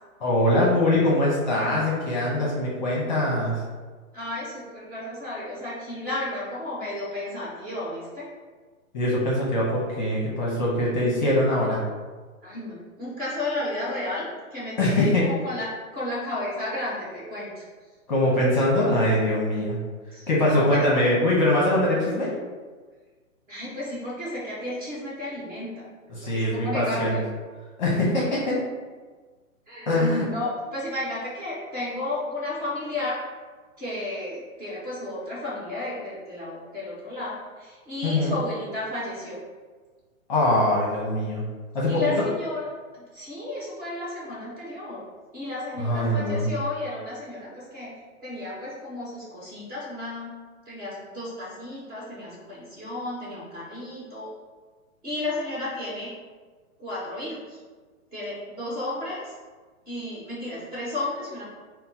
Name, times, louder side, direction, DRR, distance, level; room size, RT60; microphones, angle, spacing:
voice 1, 0.2-3.6 8.9-11.8 14.8-15.3 18.1-19.8 20.3-22.3 26.1-27.2 27.8-28.6 29.9-30.3 38.0-38.3 40.3-41.4 41.7-42.0 45.8-46.5, left 1 dB, 35° left, -5 dB, 0.9 m, -22 dB
voice 2, 4.1-8.3 12.4-14.2 14.5-15.7 15.9-17.6 20.1-20.9 23.5-25.9 26.2-27.3 29.7-33.2 33.8-39.4 41.9-42.7 42.9-45.0 45.3-47.9 48.2-50.3 50.6-54.3 55.0-56.1 56.8-57.6 58.1-59.3 59.8-61.4, left 2 dB, 25° right, -8 dB, 1.5 m, -33 dB
5.2 x 2.1 x 4.3 m, 1.4 s
hypercardioid pair, 170°, 42 cm